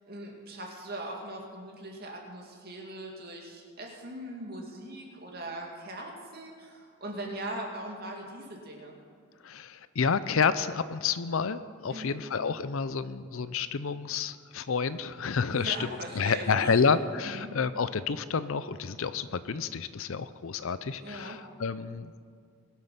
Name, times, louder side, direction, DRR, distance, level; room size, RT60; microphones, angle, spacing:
voice 1, 0.1-9.0 11.9-12.2 15.5-16.8 17.2-17.5 21.0-21.4, right 1 dB, 45° right, 0 dB, 2.5 m, -40 dB
voice 2, 9.4-22.1, left 5 dB, 65° left, 14 dB, 0.5 m, -29 dB
21.5 x 7.7 x 5.8 m, 2.1 s
head